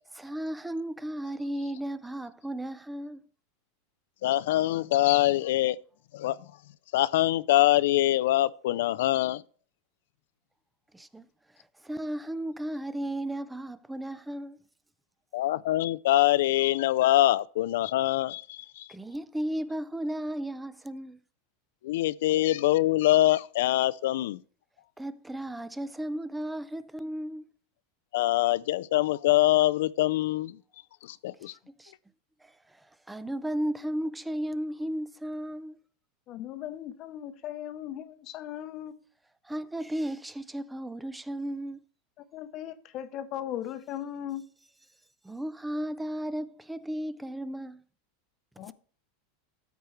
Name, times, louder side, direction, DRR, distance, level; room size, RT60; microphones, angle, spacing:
voice 1, 0.2-3.2 10.9-11.3 11.8-14.6 18.9-21.2 25.0-27.4 31.8-31.9 32.4-32.5 33.1-35.8 39.4-41.8 45.2-47.8 48.7-48.8, right 1 dB, 5° right, 0.4 m, -34 dB
voice 2, 4.2-5.8 6.1-6.4 6.9-9.4 15.3-18.9 21.8-24.4 28.1-30.6 31.0-31.5, left 15 dB, 75° left, 0.3 m, -24 dB
voice 3, 36.3-38.9 42.3-44.4 48.6-48.7, left 11 dB, 40° left, 0.7 m, -38 dB
13.0 x 4.6 x 3.1 m
supercardioid pair, 135°, 0 cm